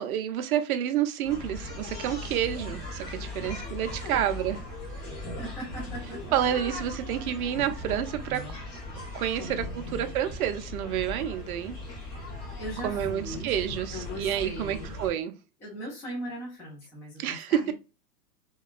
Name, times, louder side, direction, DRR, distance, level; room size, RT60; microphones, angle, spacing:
voice 1, 0.0-4.6 6.3-8.4 9.1-11.8 12.8-15.3 17.2-17.6, right 10 dB, 65° right, 8 dB, 0.5 m, -29 dB
sound 1, 1.2-15.1, left 1 dB, 25° left, 0.9 m, -38 dB
voice 2, 3.4-4.3 5.2-6.2 9.4-10.2 12.6-13.5 13.9-14.9 15.6-17.7, equal, 5° left, -7 dB, 0.5 m, -40 dB
2.9 x 2.3 x 2.3 m, 0.29 s
hypercardioid pair, 135°, 48 cm